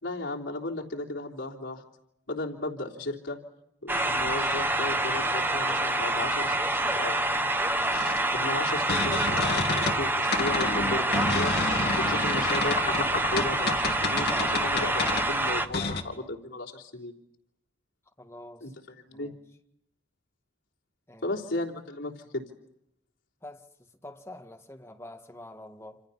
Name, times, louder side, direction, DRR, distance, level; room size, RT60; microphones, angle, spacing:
voice 1, 0.0-1.8 2.3-3.4 3.8-7.2 8.3-11.5 12.0-17.1 18.6-19.3 21.2-22.4, left 2 dB, 85° left, 3.5 m, -35 dB
sound 1, 3.9-15.7, right 1 dB, 10° right, 1.0 m, -27 dB
sound 2, 7.9-10.0 10.3-16.0, left 3 dB, 55° left, 2.5 m, -30 dB
voice 2, 15.8-16.3 18.2-18.7 19.1-19.4 21.1-21.4 23.4-23.7 24.0-26.0, left 1 dB, 15° left, 2.0 m, -46 dB
28.0 x 27.5 x 5.7 m
head